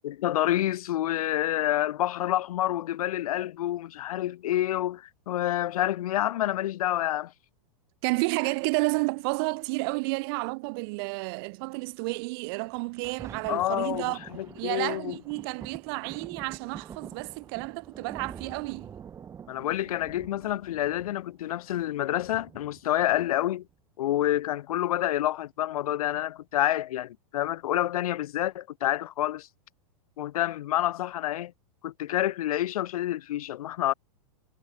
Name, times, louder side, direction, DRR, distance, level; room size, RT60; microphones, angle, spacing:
voice 1, 0.0-7.3 13.5-15.2 19.5-23.6 24.0-29.5 30.2-31.5 31.8-33.9, left 13 dB, 80° left, 0.6 m, -28 dB
voice 2, 8.0-14.2 14.6-19.0, right 29 dB, 40° right, 0.8 m, -31 dB
Thunder, 12.7-23.7 24.3-24.4, right 7 dB, 15° right, 1.7 m, -47 dB
supercardioid pair, 150°, 18 cm